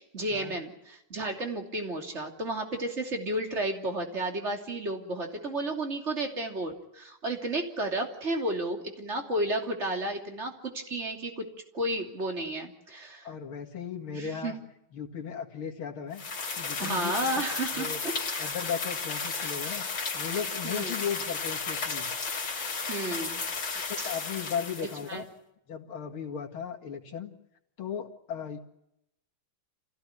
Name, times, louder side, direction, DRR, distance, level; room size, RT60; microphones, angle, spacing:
voice 1, 0.0-11.5 11.7-13.3 14.1-14.5 16.8-18.5 20.6-21.0 22.9-23.4 24.0-24.1 25.1-25.2, right 1 dB, 30° right, 3 dB, 3.2 m, -32 dB
voice 2, 13.2-14.6 14.9-16.2 16.5-17.4 17.7-18.0 18.4-19.8 20.1-22.1 23.9-25.3 25.7-27.3 27.8-28.6, left 7 dB, 80° left, 3 dB, 3.0 m, -36 dB
sound 1, 16.2-25.2, left 4 dB, 65° left, 3.4 m, -34 dB
27.0 x 16.5 x 9.8 m, 0.84 s
omnidirectional pair, 2.3 m